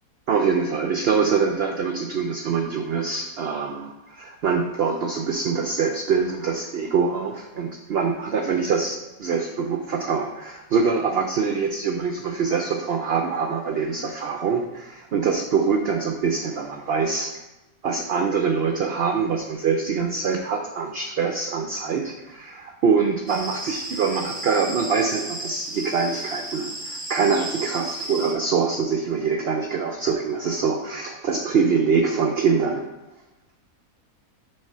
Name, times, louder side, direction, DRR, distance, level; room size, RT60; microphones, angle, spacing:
voice 1, 0.3-17.3 17.8-32.8, right 5 dB, 75° right, 4 dB, 0.5 m, -24 dB
sound 1, 23.3-28.3, right 1 dB, 15° right, 0.6 m, -34 dB
6.4 x 3.5 x 5.5 m, 1.1 s
omnidirectional pair, 1.6 m